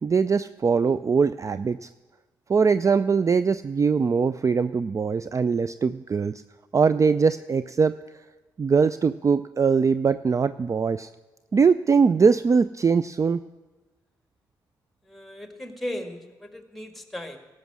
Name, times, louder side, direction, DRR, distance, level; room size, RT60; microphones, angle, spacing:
voice 1, 0.0-1.9 2.5-6.4 6.7-7.9 8.6-11.1 11.5-13.4, right 5 dB, 30° right, 14 dB, 0.4 m, -21 dB
voice 2, 15.0-17.4, left 1 dB, ahead, 6 dB, 1.7 m, -36 dB
17.5 x 6.4 x 6.1 m, 1.2 s
hypercardioid pair, 40°, 10 cm